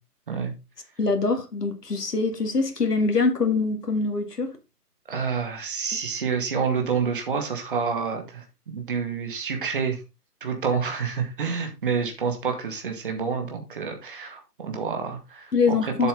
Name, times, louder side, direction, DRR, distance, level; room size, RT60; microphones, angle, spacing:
voice 1, 1.0-4.6 15.5-16.1, left 4 dB, 75° left, 2.1 m, -24 dB
voice 2, 5.1-10.0 10.4-16.1, right 6 dB, 35° right, 2.0 m, -28 dB
7.8 x 6.8 x 3.8 m
figure-of-eight pair, 155°, 48 cm